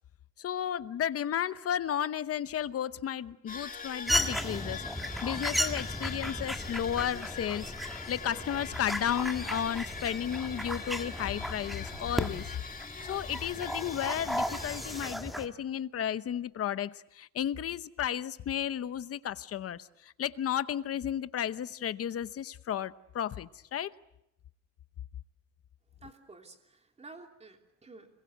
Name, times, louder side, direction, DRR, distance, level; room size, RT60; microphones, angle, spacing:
voice 1, 0.4-12.5 13.0-23.9, left 10 dB, 50° left, 0.9 m, -33 dB
sound 1, 3.5-15.0, left 5 dB, 25° left, 2.1 m, -43 dB
sound 2, 4.1-15.5, equal, ahead, 1.5 m, -35 dB
voice 2, 26.0-28.2, right 3 dB, 20° right, 3.0 m, -52 dB
26.5 x 23.0 x 8.0 m
cardioid pair, 160°, 31 cm